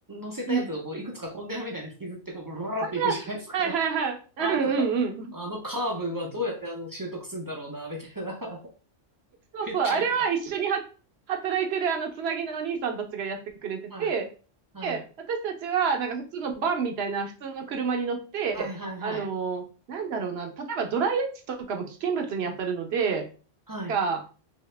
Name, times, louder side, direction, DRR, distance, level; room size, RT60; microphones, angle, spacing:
voice 1, 0.1-3.7 4.4-4.7 5.3-8.6 9.6-10.1 13.9-14.1 14.7-15.0 18.5-19.3 23.7-23.9, equal, 30° right, -1 dB, 0.4 m, -34 dB
voice 2, 3.5-5.3 9.5-10.8 11.3-14.3 14.8-18.7 19.0-19.6 19.9-23.2 23.9-24.2, right 6 dB, 60° right, 3 dB, 0.8 m, -28 dB
2.8 x 2.7 x 3.2 m, 0.37 s
omnidirectional pair, 1.3 m